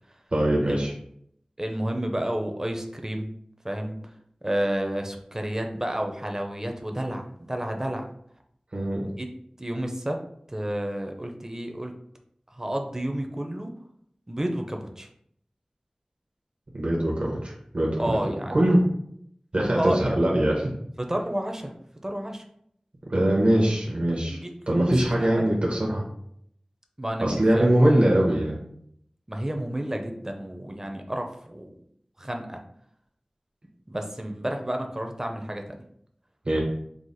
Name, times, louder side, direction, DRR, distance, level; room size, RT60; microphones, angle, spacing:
voice 1, 0.3-0.9 8.7-9.1 16.7-18.8 19.5-20.7 23.1-24.4 24.7-26.0 27.2-28.5 36.4-36.6, right 1 dB, 60° right, -2 dB, 0.9 m, -22 dB
voice 2, 1.6-3.3 3.6-4.0 4.4-8.0 9.0-9.3 9.6-10.2 10.5-11.9 12.5-13.7 14.3-15.1 18.0-18.7 19.7-20.1 21.0-21.7 22.0-22.4 24.3-25.6 27.0-27.6 28.3-28.4 29.3-31.7 32.2-32.6 33.9-35.8, right 1 dB, 25° right, 4 dB, 0.6 m, -31 dB
4.8 x 2.0 x 4.0 m, 0.69 s
wide cardioid pair, 55°, 2 cm